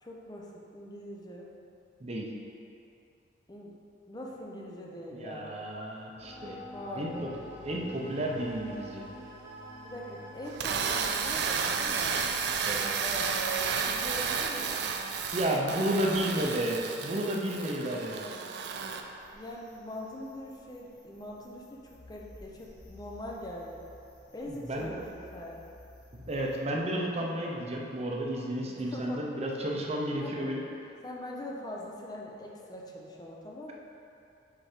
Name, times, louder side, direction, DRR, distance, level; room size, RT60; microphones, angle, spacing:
voice 1, 0.0-1.5 3.5-3.8 4.1-5.6 6.7-7.3 9.8-12.3 13.0-14.8 19.3-23.9 24.3-25.6 28.7-29.3 30.2-30.4 31.0-33.7, equal, 20° left, -2 dB, 0.6 m, -42 dB
voice 2, 5.1-6.6 6.9-7.3 7.6-9.0 12.6-12.8 15.3-18.3 24.5-24.9 26.1-30.6, right 1 dB, 35° right, -1 dB, 0.7 m, -32 dB
sound 1, 6.2-12.6, right 1 dB, 90° right, 1.5 m, -46 dB
sound 2, 10.5-19.0, right 6 dB, 65° right, 0.4 m, -32 dB
sound 3, 18.8-26.6, left 1 dB, 70° left, 1.4 m, -55 dB
4.7 x 4.5 x 5.0 m, 2.7 s
head